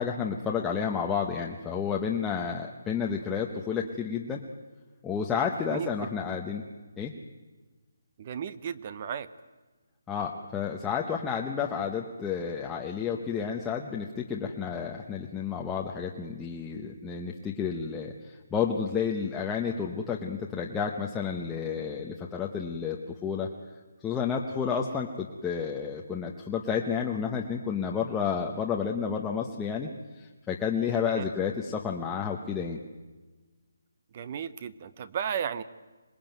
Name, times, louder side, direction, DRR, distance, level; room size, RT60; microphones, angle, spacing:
voice 1, 0.0-4.4 5.0-6.6 7.0-7.1 10.1-23.5 24.0-29.9 30.2-32.8, left 6 dB, 5° left, -1 dB, 0.9 m, -31 dB
voice 2, 8.2-9.3 31.1-31.3 34.1-35.6, right 8 dB, 25° right, 15 dB, 0.7 m, -34 dB
26.0 x 20.0 x 9.2 m, 1.3 s
hypercardioid pair, 175°, 0 cm